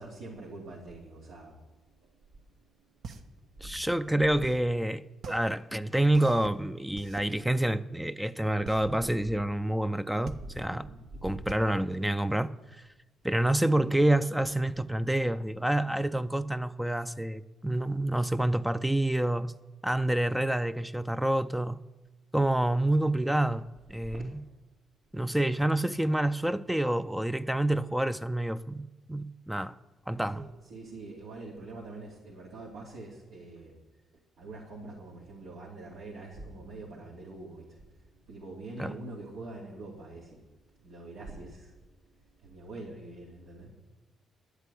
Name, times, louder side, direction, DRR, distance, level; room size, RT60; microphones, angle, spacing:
voice 1, 0.0-1.6 2.0-2.1 3.6-3.8 10.3-11.4 24.1-24.2 30.3-33.8 34.4-40.5 40.8-41.8 42.2-43.7, right 2 dB, 75° right, 2.9 m, -44 dB
sound 1, 2.5-12.9, right 5 dB, 60° right, 1.1 m, -46 dB
voice 2, 3.6-10.9 11.2-12.8 13.2-19.5 19.8-21.8 22.3-24.3 25.1-29.8 30.1-30.5 38.8-38.9, right 1 dB, 5° right, 0.5 m, -28 dB
11.0 x 8.2 x 9.8 m
cardioid pair, 90°, 0 cm